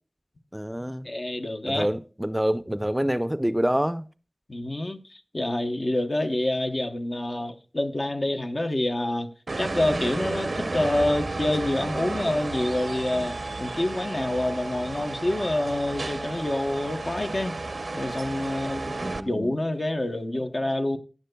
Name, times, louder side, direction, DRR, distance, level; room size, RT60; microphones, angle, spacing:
voice 1, 0.5-1.1 1.7-4.1 19.0-19.5, equal, 10° right, 0.4 m, -27 dB
voice 2, 1.0-1.9 4.5-9.3 9.6-17.6 17.9-21.0, left 1 dB, 55° left, 0.8 m, -27 dB
sound 1, 9.5-19.2, right 2 dB, 85° right, 0.5 m, -32 dB
14.5 x 9.7 x 2.2 m
wide cardioid pair, 50°, 0 cm